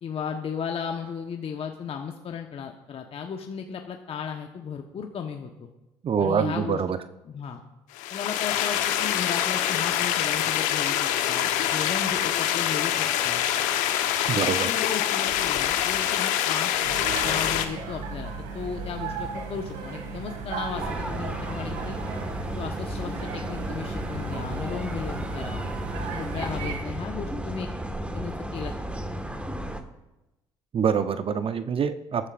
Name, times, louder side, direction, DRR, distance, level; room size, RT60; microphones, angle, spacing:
voice 1, 0.0-5.7 6.2-6.8 7.2-7.6 8.1-13.4 14.3-16.7 17.2-22.0 22.5-25.7 26.1-27.7 28.1-28.7, left 7 dB, 45° left, 3 dB, 1.2 m, -35 dB
voice 2, 6.0-7.0 14.3-14.7 30.7-32.3, right 7 dB, 45° right, 11 dB, 0.8 m, -25 dB
sound 1, 8.0-17.7, left 11 dB, 70° left, 1.1 m, -25 dB
sound 2, 16.8-26.8, right 5 dB, 70° right, 2.3 m, -36 dB
sound 3, 20.7-29.8, equal, 10° right, 1.6 m, -33 dB
21.0 x 11.0 x 2.5 m, 1.0 s
hypercardioid pair, 55°, 13 cm